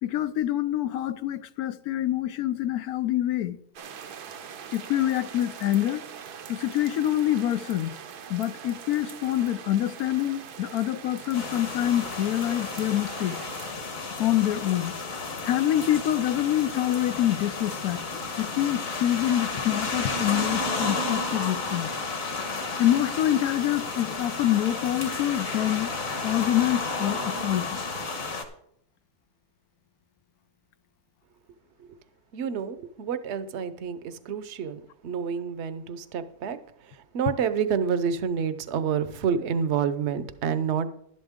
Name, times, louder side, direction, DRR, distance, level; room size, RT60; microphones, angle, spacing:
voice 1, 0.0-3.6 4.7-6.0 6.5-8.0 8.3-13.4 14.2-14.9 15.4-18.1 18.4-21.9 22.8-25.9 26.2-27.8, left 12 dB, 75° left, 1.0 m, -26 dB
sound 1, 3.8-13.7, right 7 dB, 75° right, 1.5 m, -42 dB
sound 2, 11.3-28.4, left 3 dB, 55° left, 1.8 m, -32 dB
voice 2, 32.3-36.6 37.1-40.9, right 7 dB, 50° right, 0.9 m, -28 dB
11.5 x 11.5 x 3.6 m
omnidirectional pair, 1.7 m